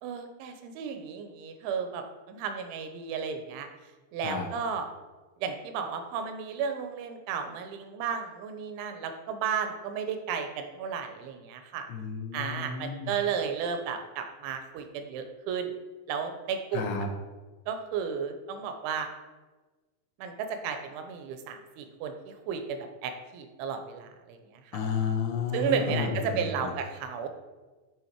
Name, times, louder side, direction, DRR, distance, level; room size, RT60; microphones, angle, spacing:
voice 1, 0.0-3.7 4.1-4.9 5.4-11.9 12.3-15.7 16.1-17.0 17.7-19.1 20.2-24.8 25.5-27.3, right 6 dB, 85° right, 6 dB, 2.9 m, -33 dB
voice 2, 11.9-13.1 16.7-17.1 24.7-26.7, left 5 dB, 85° left, 3 dB, 3.2 m, -31 dB
9.7 x 3.8 x 4.5 m, 1.2 s
omnidirectional pair, 5.4 m